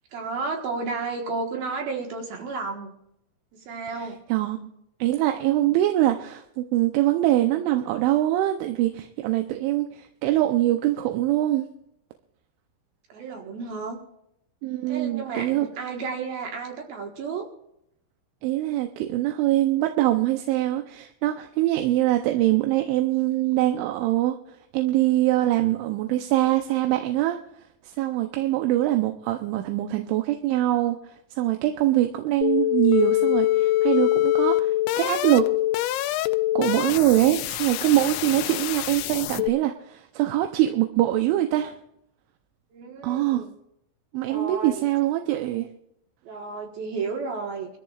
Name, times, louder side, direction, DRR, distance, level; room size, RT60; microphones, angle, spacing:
voice 1, 0.1-2.9 3.5-4.2 13.1-14.0 14.9-17.5 28.2-28.3 42.7-43.5 44.3-44.8 46.2-47.8, right 4 dB, 60° right, 2 dB, 2.8 m, -32 dB
voice 2, 4.3-4.7 5.0-11.7 14.6-15.7 18.4-24.4 24.7-27.4 27.8-31.0 31.4-35.5 36.6-41.7 43.0-43.4 44.1-45.7, right 14 dB, 80° right, 5 dB, 3.1 m, -23 dB
sound 1, 32.4-39.5, left 15 dB, 80° left, 2.8 m, -24 dB
24.0 x 14.0 x 2.4 m, 0.77 s
omnidirectional pair, 5.7 m